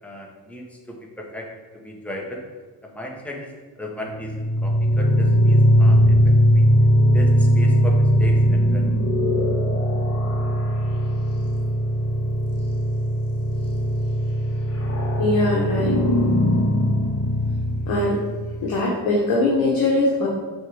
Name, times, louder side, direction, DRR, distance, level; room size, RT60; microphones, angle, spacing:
voice 1, 0.0-1.5 1.7-2.4 2.8-3.5 3.8-4.3 4.6-6.6 7.1-9.0, left 1 dB, 5° left, -1 dB, 0.9 m, -36 dB
sound 1, 4.1-18.6, equal, 35° left, 1.2 m, -20 dB
voice 2, 15.2-16.0 17.9-18.2 18.6-20.3, left 2 dB, 60° left, -4 dB, 1.1 m, -21 dB
6.3 x 3.2 x 4.8 m, 1.3 s
cardioid pair, 130°, 40 cm